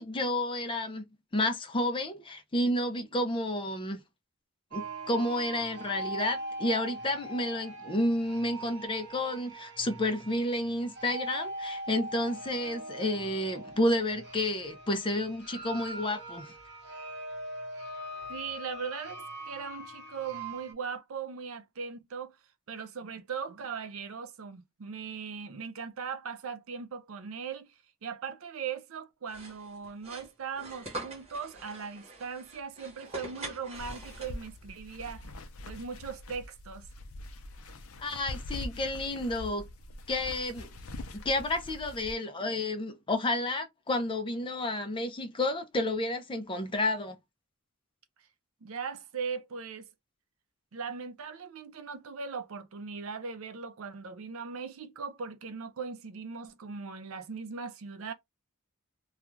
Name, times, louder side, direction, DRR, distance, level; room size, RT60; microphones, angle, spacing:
voice 1, 0.0-4.0 4.7-16.5 38.0-39.7 40.1-40.7 41.1-47.2, left 1 dB, 25° left, 0.5 m, -31 dB
sound 1, 4.7-20.7, right 1 dB, 50° right, 1.0 m, -41 dB
voice 2, 18.3-19.2 19.5-22.4 22.7-27.7 28.0-35.3 35.7-36.9 48.6-49.9 50.7-58.1, right 6 dB, 70° right, 0.5 m, -39 dB
sound 2, 29.3-34.6, right 2 dB, 30° right, 1.0 m, -44 dB
sound 3, 33.7-42.1, left 2 dB, 75° left, 0.5 m, -43 dB
2.4 x 2.3 x 3.0 m
head